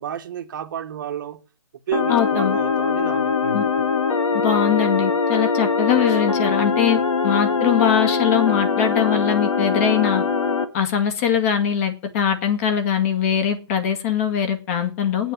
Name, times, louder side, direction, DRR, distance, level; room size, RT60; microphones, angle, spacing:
voice 1, 0.0-1.4 1.9-3.6, right 9 dB, 35° right, 1.5 m, -31 dB
sound 1, 1.9-10.6, left 5 dB, 70° left, 2.4 m, -22 dB
voice 2, 2.1-2.6 3.5-3.6 4.4-10.2 10.7-15.3, left 8 dB, 30° left, 2.1 m, -21 dB
9.4 x 9.3 x 9.8 m
hypercardioid pair, 160°, 17 cm